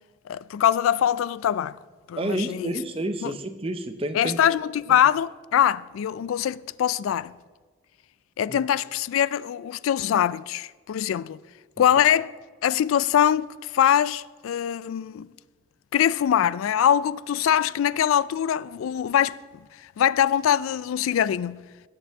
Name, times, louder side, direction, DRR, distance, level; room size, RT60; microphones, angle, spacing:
voice 1, 0.3-1.8 2.1-2.7 3.2-3.3 4.1-7.3 8.4-11.4 11.8-12.4 12.6-15.3 15.9-19.4 20.0-21.6, left 9 dB, 90° left, 0.3 m, -23 dB
voice 2, 2.2-4.4 8.5-8.6, right 1 dB, 30° right, 0.6 m, -29 dB
17.5 x 8.1 x 3.5 m
head